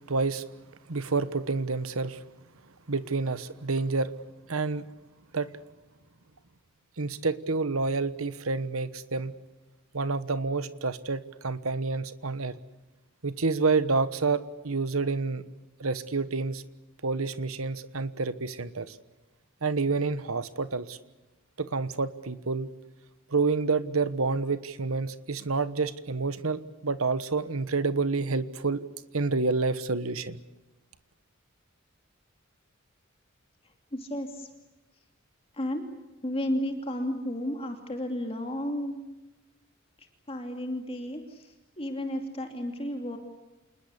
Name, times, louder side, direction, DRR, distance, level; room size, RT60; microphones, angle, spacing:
voice 1, 0.1-0.5 0.9-2.2 2.9-4.1 4.5-4.8 5.3-5.5 7.0-9.3 9.9-12.6 13.2-15.4 15.8-16.6 17.0-19.0 19.6-21.0 21.6-22.7 23.3-28.8 29.1-30.4, right 4 dB, 80° right, 13 dB, 1.3 m, -28 dB
voice 2, 33.9-34.5 35.5-35.9 36.2-39.0 40.0-43.2, left 1 dB, 30° left, 4 dB, 2.7 m, -33 dB
28.0 x 21.0 x 8.4 m, 1.1 s
head